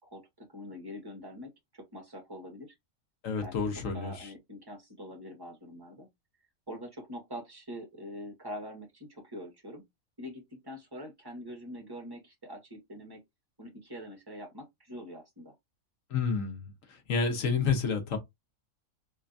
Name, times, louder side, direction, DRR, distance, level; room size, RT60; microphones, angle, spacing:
voice 1, 0.0-2.8 3.4-3.5 3.9-6.1 6.7-9.8 10.2-13.2 13.6-15.5, equal, 15° right, 1.6 m, -44 dB
voice 2, 3.2-4.3 16.1-16.7 17.1-18.2, left 5 dB, 70° left, 1.4 m, -29 dB
3.7 x 3.3 x 2.6 m
omnidirectional pair, 1.4 m